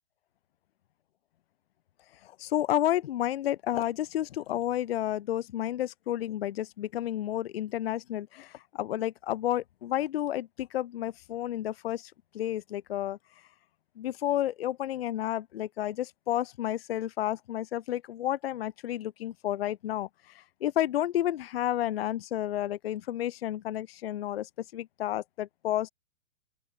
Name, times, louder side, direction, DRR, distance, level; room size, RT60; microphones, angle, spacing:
voice 1, 2.2-13.2 14.0-20.1 20.3-25.9, left 12 dB, 50° left, 0.7 m, -31 dB
open air
figure-of-eight pair, 115°, 38 cm